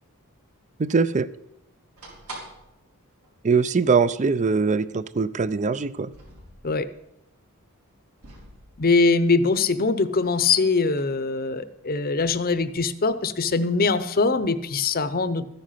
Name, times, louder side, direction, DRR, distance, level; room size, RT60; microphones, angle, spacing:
voice 1, 0.8-1.3 3.4-6.1, right 4 dB, 35° right, 17 dB, 0.4 m, -22 dB
sound 1, 2.0-2.8 3.2-3.3 3.5-3.6 4.5-4.6 6.0-7.0 8.2-9.6 10.0-11.1, right 2 dB, 75° right, 4.5 m, -46 dB
voice 2, 8.8-15.5, left 4 dB, 40° left, 13 dB, 0.7 m, -22 dB
13.5 x 9.9 x 5.7 m, 0.85 s
head